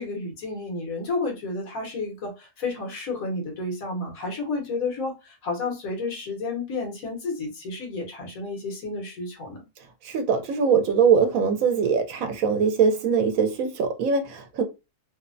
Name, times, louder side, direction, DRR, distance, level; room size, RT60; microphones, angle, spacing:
voice 1, 0.0-9.6, left 3 dB, 85° left, 1.5 m, -31 dB
voice 2, 10.0-14.6, right 6 dB, 80° right, 1.0 m, -22 dB
3.2 x 2.0 x 2.5 m
omnidirectional pair, 1.4 m